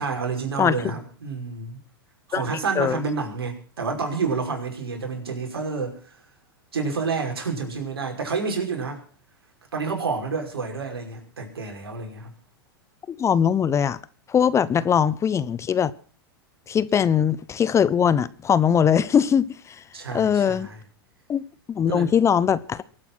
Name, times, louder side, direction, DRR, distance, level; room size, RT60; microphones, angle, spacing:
voice 1, 0.0-1.8 2.3-6.2 6.7-9.0 9.7-12.3 19.9-20.8 21.9-22.1, right 4 dB, 80° right, 5.7 m, -29 dB
voice 2, 13.1-14.0 14.3-15.9 16.7-19.5 20.1-20.7 21.3-21.4 21.7-22.8, left 8 dB, 25° left, 0.8 m, -21 dB
23.5 x 9.0 x 6.1 m
hypercardioid pair, 100°, 13 cm